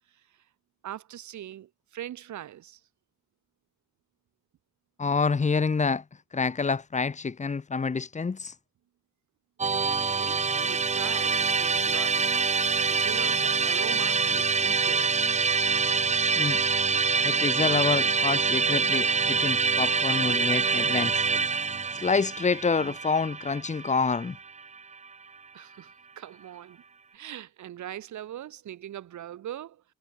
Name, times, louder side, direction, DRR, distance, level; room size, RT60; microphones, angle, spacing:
voice 1, 0.1-0.4 0.8-2.8 9.7-15.4 22.8-22.9 25.5-26.8 27.1-29.8, right 11 dB, 70° right, 3.6 m, -42 dB
voice 2, 5.0-6.0 6.3-8.6 16.4-16.6 17.2-21.3 21.9-24.4, left 4 dB, 25° left, 1.1 m, -27 dB
Musical instrument, 9.6-24.8, right 5 dB, 25° right, 0.8 m, -25 dB
cardioid pair, 90°, 30 cm